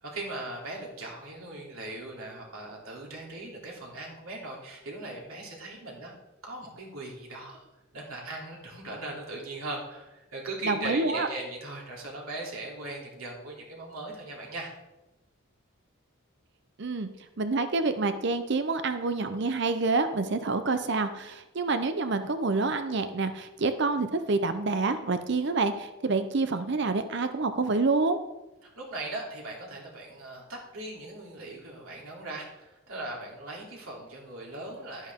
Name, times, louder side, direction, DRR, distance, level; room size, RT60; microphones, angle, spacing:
voice 1, 0.0-6.1 6.4-7.6 7.9-14.7 28.8-35.1, right 2 dB, 85° right, -2 dB, 3.2 m, -39 dB
voice 2, 10.6-11.3 16.8-17.1 17.4-28.2, right 3 dB, 55° right, 10 dB, 0.6 m, -27 dB
11.5 x 10.5 x 3.7 m, 1.0 s
head